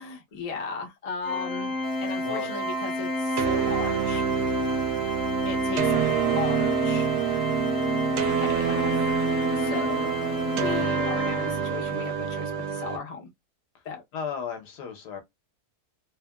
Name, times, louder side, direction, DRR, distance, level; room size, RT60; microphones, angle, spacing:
voice 1, 0.0-1.7 2.0-4.3 5.4-7.1 8.2-9.1 9.6-10.1 10.6-13.3 13.8-14.0, left 5 dB, 45° left, 0.5 m, -36 dB
Organ, 1.2-12.0, left 2 dB, 65° left, 0.8 m, -30 dB
sound 1, 1.8-10.8, right 9 dB, 55° right, 0.8 m, -38 dB
sound 2, 3.4-13.0, right 8 dB, 85° right, 1.2 m, -27 dB
voice 2, 4.3-4.7 9.6-10.6 14.1-15.2, left 6 dB, 85° left, 1.5 m, -36 dB
3.3 x 2.1 x 2.2 m
omnidirectional pair, 1.7 m